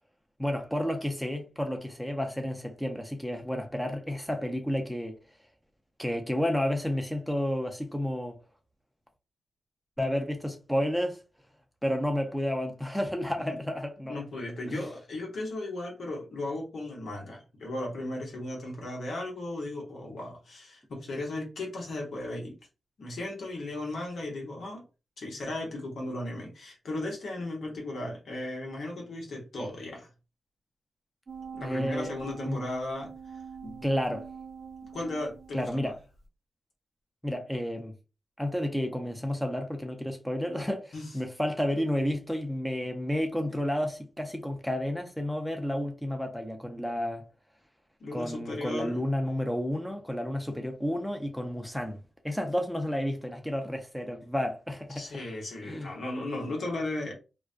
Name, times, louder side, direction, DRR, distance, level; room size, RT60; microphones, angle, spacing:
voice 1, 0.4-5.2 6.0-8.4 10.0-11.2 11.8-14.2 14.6-14.8 31.6-32.1 32.5-32.6 33.8-34.3 35.5-35.9 37.2-37.9 38.4-47.2 48.1-52.0 52.2-55.2 55.6-55.9, equal, 5° left, 0.6 m, -31 dB
voice 2, 14.1-22.5 23.0-24.8 25.2-30.1 31.5-33.1 33.6-33.8 34.9-35.9 40.9-41.1 48.0-49.0 54.9-57.1, left 2 dB, 75° left, 1.0 m, -36 dB
sound 1, 31.3-35.8 36.2-36.3, right 6 dB, 70° right, 0.6 m, -43 dB
2.2 x 2.2 x 2.5 m
supercardioid pair, 45°, 0 cm